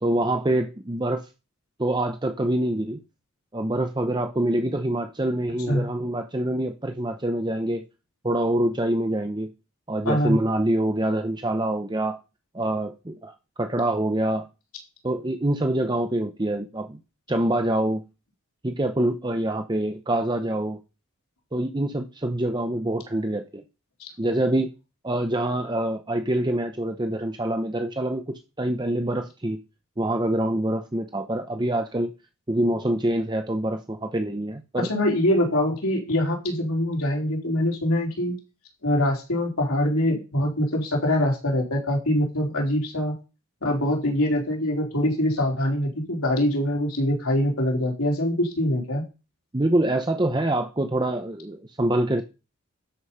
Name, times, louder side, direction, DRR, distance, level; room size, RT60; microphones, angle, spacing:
voice 1, 0.0-1.3 1.8-3.0 3.5-7.8 8.2-9.5 9.9-12.2 12.5-13.3 13.6-14.5 15.0-17.0 17.3-18.0 18.6-20.8 21.5-23.6 24.2-24.7 25.0-28.2 28.6-29.6 30.0-32.1 32.5-34.9 49.5-52.2, right 1 dB, 20° right, 0.7 m, -25 dB
voice 2, 10.0-10.4 24.0-24.1 34.7-38.3 38.8-43.1 43.6-49.0, left 1 dB, 90° left, 4.0 m, -24 dB
12.5 x 5.5 x 5.6 m
head